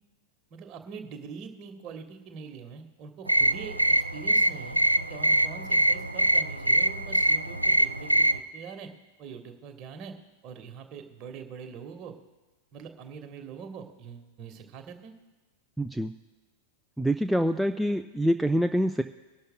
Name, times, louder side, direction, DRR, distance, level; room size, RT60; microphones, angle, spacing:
voice 1, 0.5-3.8 4.1-4.8 5.1-8.9 9.2-10.1 10.4-12.1 12.7-15.1, right 6 dB, 35° right, 5 dB, 1.4 m, -43 dB
sound 1, 3.3-8.4, right 1 dB, 85° right, 0.4 m, -24 dB
voice 2, 15.8-16.1 17.0-19.0, equal, ahead, 8 dB, 0.4 m, -25 dB
23.5 x 11.5 x 2.2 m, 1.2 s
figure-of-eight pair, 90°, 0 cm